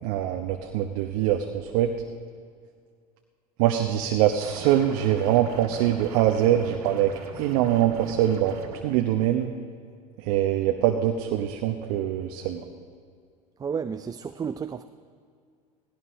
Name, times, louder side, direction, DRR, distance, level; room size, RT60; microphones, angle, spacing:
voice 1, 0.0-1.9 3.6-7.1 7.4-8.6 8.8-9.5 10.3-12.6, right 11 dB, 60° right, 4 dB, 0.8 m, -23 dB
sound 1, 4.4-8.8, right 5 dB, 80° right, 1.8 m, -41 dB
voice 2, 13.6-14.8, right 6 dB, 20° right, 10 dB, 0.4 m, -31 dB
18.0 x 16.5 x 3.1 m, 2.1 s
hypercardioid pair, 80°, 19 cm